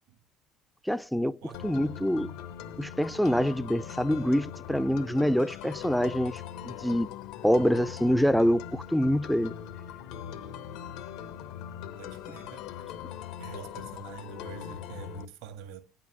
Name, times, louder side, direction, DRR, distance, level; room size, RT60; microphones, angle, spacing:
voice 1, 0.9-2.3 2.8-7.1 7.4-9.5, equal, ahead, 0.5 m, -26 dB
sound 1, 1.5-15.2, left 9 dB, 60° left, 0.8 m, -41 dB
voice 2, 12.0-12.9 13.4-15.8, right 8 dB, 60° right, 1.7 m, -45 dB
9.5 x 5.8 x 7.8 m
figure-of-eight pair, 60°, 0 cm